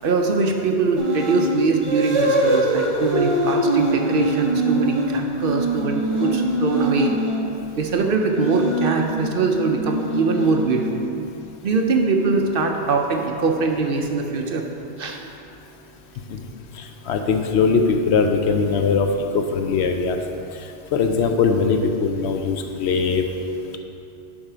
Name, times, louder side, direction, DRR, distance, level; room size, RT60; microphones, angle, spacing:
voice 1, 0.0-7.1 7.5-11.0 11.6-14.7 15.0-15.2, right 4 dB, 60° right, 3 dB, 0.7 m, -22 dB
sound 1, 1.0-1.5 1.8-7.5 8.2-11.1, right 1 dB, 30° right, 0.9 m, -23 dB
voice 2, 16.8-20.2 20.9-23.2, left 5 dB, 75° left, 5 dB, 0.9 m, -21 dB
7.3 x 5.6 x 5.0 m, 2.7 s
omnidirectional pair, 1.2 m